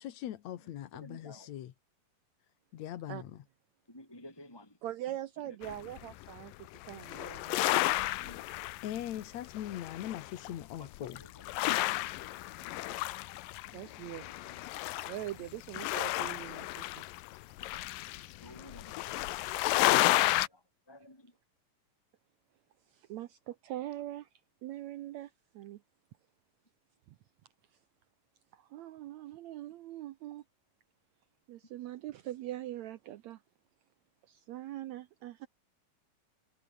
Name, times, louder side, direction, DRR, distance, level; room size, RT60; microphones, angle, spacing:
voice 1, 0.0-1.7 2.7-3.4 8.8-11.2, left 12 dB, 65° left, 2.3 m, -41 dB
voice 2, 1.0-1.5 3.9-4.8 5.4-5.8 7.4-7.8 8.2-8.4 10.5-12.7 13.7-14.9 15.4-15.5 18.4-19.3 19.6-21.3, left 1 dB, 5° left, 4.0 m, -54 dB
voice 3, 4.8-7.6 12.9-13.0 13.7-14.3 15.0-17.0 18.5-18.6 19.9-20.4 22.9-24.3 24.6-25.8 27.1-27.2 28.5-30.4 31.5-33.4 34.2-35.5, right 14 dB, 70° right, 1.8 m, -42 dB
sound 1, 5.6-6.4 6.8-9.2 9.5-10.5 10.9-20.5, left 17 dB, 85° left, 2.5 m, -32 dB
omnidirectional pair, 3.8 m